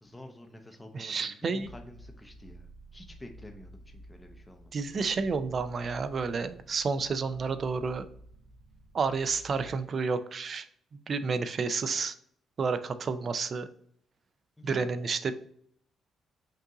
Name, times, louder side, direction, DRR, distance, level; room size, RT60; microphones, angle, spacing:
voice 1, 0.0-4.9 14.6-15.1, left 1 dB, 15° left, 4 dB, 0.6 m, -49 dB
voice 2, 0.9-1.7 4.7-8.1 8.9-10.7 10.9-12.2 12.6-13.7 14.6-15.3, right 4 dB, 45° right, 11 dB, 0.4 m, -30 dB
sound 1, 1.6-9.7, right 1 dB, 85° right, 0.8 m, -52 dB
5.3 x 2.6 x 3.6 m, 0.65 s
cardioid pair, 90°, 0 cm